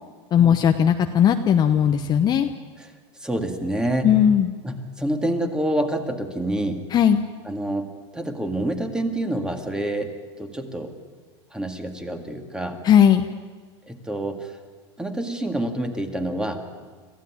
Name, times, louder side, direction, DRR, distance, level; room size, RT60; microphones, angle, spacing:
voice 1, 0.3-2.5 4.0-4.5 6.9-7.2 12.8-13.3, left 9 dB, 30° left, 6 dB, 0.9 m, -17 dB
voice 2, 2.8-4.2 4.6-6.9 7.4-10.9 11.5-12.8 13.9-14.6 15.0-16.7, right 1 dB, 5° right, 6 dB, 2.0 m, -27 dB
26.0 x 15.0 x 9.5 m, 1.5 s
supercardioid pair, 140°, 15 cm